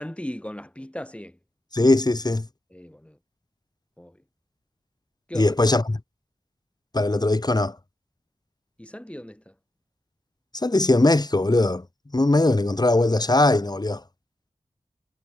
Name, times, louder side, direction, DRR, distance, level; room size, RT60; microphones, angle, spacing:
voice 1, 0.0-1.4 2.7-3.2 4.0-4.2 5.3-5.5 8.8-9.5, left 1 dB, 10° left, 3.9 m, -37 dB
voice 2, 1.7-2.5 5.3-6.0 6.9-7.8 10.5-11.8 12.1-14.0, left 2 dB, 35° left, 1.8 m, -20 dB
wide cardioid pair, 50°, 12 cm